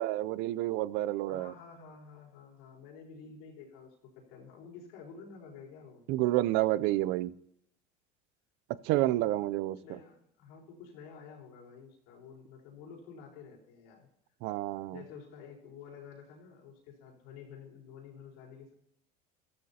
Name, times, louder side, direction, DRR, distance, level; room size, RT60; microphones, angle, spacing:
voice 1, 0.0-1.5 6.1-7.3 8.8-9.7 14.4-15.0, right 16 dB, 70° right, 0.5 m, -29 dB
voice 2, 1.2-6.1 9.1-14.1 14.9-18.7, left 6 dB, 80° left, 4.4 m, -50 dB
14.5 x 13.0 x 2.9 m
supercardioid pair, 105°, 18 cm